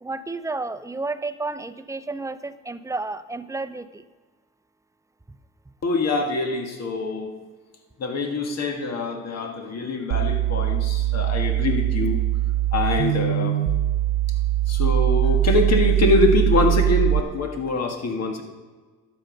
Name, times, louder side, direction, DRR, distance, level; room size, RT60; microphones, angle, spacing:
voice 1, 0.0-4.0, right 3 dB, 10° right, 11 dB, 0.5 m, -31 dB
voice 2, 5.8-7.3 8.0-12.2 12.7-13.6 14.7-18.4, left 3 dB, 60° left, 3 dB, 1.8 m, -24 dB
sound 1, 10.1-17.2, right 13 dB, 85° right, 0.6 m, -21 dB
12.0 x 7.8 x 5.2 m, 1.3 s
cardioid pair, 90°, 30 cm